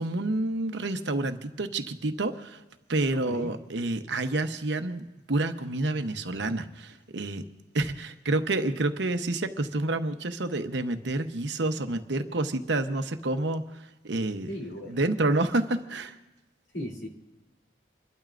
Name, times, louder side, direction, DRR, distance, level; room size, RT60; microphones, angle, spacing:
voice 1, 0.0-2.6 2.9-7.4 7.7-14.5 14.9-16.2, right 2 dB, 70° right, 8 dB, 0.9 m, -29 dB
voice 2, 3.1-3.5 14.5-15.0 16.7-17.1, equal, 65° left, 0 dB, 3.0 m, -36 dB
29.0 x 12.0 x 2.5 m, 1.1 s
head